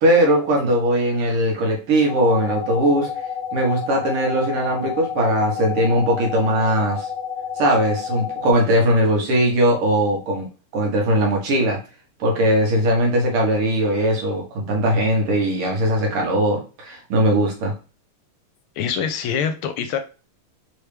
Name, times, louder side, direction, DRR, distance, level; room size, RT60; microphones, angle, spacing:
voice 1, 0.0-3.1 3.5-7.1 7.6-10.5 10.7-11.8 12.2-17.7, right 1 dB, 90° right, 2.3 m, -19 dB
sound 1, 2.1-8.5, left 7 dB, 55° right, 0.6 m, -30 dB
voice 2, 18.8-20.0, left 7 dB, 80° left, 1.4 m, -24 dB
4.6 x 3.3 x 3.3 m
omnidirectional pair, 2.4 m